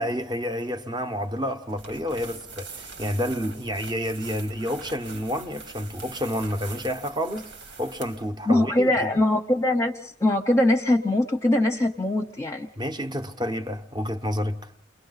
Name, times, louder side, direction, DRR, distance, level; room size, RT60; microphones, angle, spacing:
voice 1, 0.0-9.1 12.8-14.7, equal, 25° right, 0.9 m, -29 dB
sound 1, 1.7-8.3, right 4 dB, 90° right, 2.1 m, -43 dB
voice 2, 8.5-12.7, left 1 dB, 15° left, 0.8 m, -22 dB
29.0 x 22.5 x 4.0 m
head